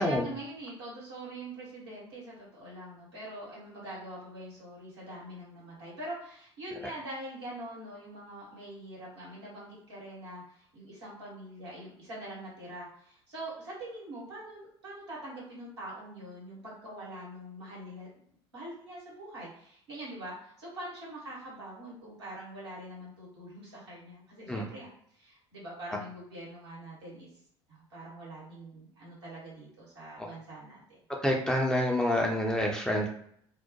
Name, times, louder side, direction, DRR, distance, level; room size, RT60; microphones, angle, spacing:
voice 1, 0.0-18.1 18.5-24.9 25.1-27.3 27.7-31.0, right 1 dB, 75° right, -5 dB, 1.2 m, -44 dB
voice 2, 31.2-33.1, left 1 dB, 5° left, -1 dB, 0.5 m, -27 dB
2.2 x 2.1 x 2.7 m, 0.66 s
figure-of-eight pair, 60°, 14 cm